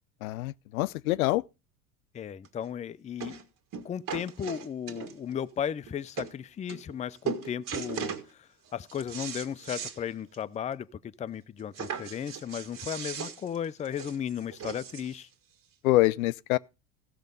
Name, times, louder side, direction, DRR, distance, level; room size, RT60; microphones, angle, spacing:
voice 1, 0.2-1.4 15.8-16.6, left 18 dB, 65° left, 0.6 m, -25 dB
voice 2, 2.1-3.4 3.8-15.3, left 8 dB, 15° left, 0.5 m, -35 dB
sound 1, 2.4-2.5 3.2-3.4 3.7-5.3 5.9-6.0 6.2-6.3 6.7-7.0 7.2-8.3 8.7-10.0 10.3-10.4 10.7-10.8 11.7-15.2 16.0-16.1, right 8 dB, 45° right, 2.2 m, -38 dB
15.5 x 6.6 x 5.3 m
hypercardioid pair, 75°, 45 cm